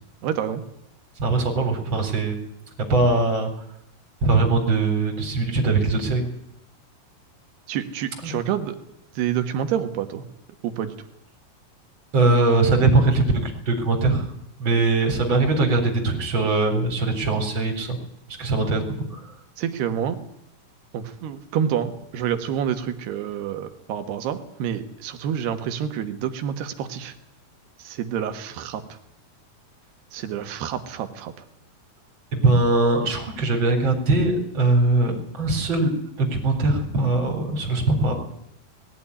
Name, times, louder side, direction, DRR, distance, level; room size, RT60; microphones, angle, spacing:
voice 1, 0.2-0.6 7.7-8.8 9.2-10.2 10.6-11.0 19.6-20.2 20.9-27.2 27.8-28.8 30.1-31.3, right 9 dB, 75° right, 8 dB, 3.4 m, -28 dB
voice 2, 1.2-2.4 2.9-3.5 4.2-6.2 8.2-8.3 12.1-14.3 14.6-18.0 18.4-19.2 32.3-38.1, right 3 dB, 30° right, 3 dB, 4.2 m, -21 dB
20.0 x 15.0 x 9.9 m, 0.75 s
omnidirectional pair, 4.7 m